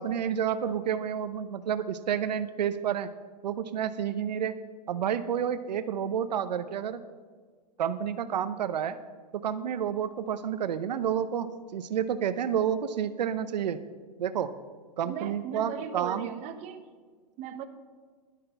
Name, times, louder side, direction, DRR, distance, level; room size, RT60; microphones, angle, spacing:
voice 1, 0.0-3.1 3.4-4.5 4.9-7.0 7.8-9.0 9.4-13.8 14.2-14.5 15.0-16.3, right 9 dB, 80° right, 11 dB, 0.7 m, -30 dB
voice 2, 15.0-16.8 17.4-17.6, right 9 dB, 35° right, 8 dB, 0.9 m, -37 dB
11.0 x 8.7 x 5.6 m, 1.5 s
hypercardioid pair, 135°, 21 cm